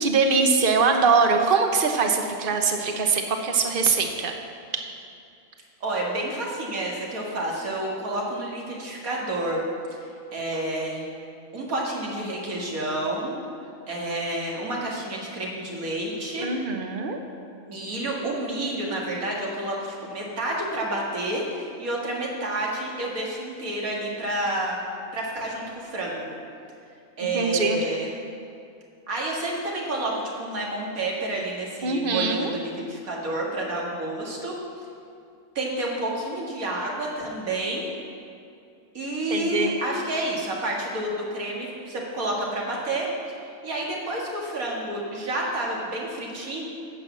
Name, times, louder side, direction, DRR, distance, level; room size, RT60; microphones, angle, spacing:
voice 1, 0.0-4.3 4.7-4.8 16.4-17.2 27.3-27.8 31.8-32.6 39.3-39.7, right 4 dB, 45° right, 4 dB, 1.0 m, -22 dB
voice 2, 5.8-9.7 10.3-11.1 11.5-13.4 13.9-16.5 17.6-24.8 25.1-26.4 27.2-28.1 29.1-34.5 35.6-37.9 38.9-43.1 43.6-46.6, right 1 dB, 80° right, -2 dB, 2.4 m, -29 dB
10.0 x 7.6 x 7.2 m, 2.4 s
omnidirectional pair, 1.5 m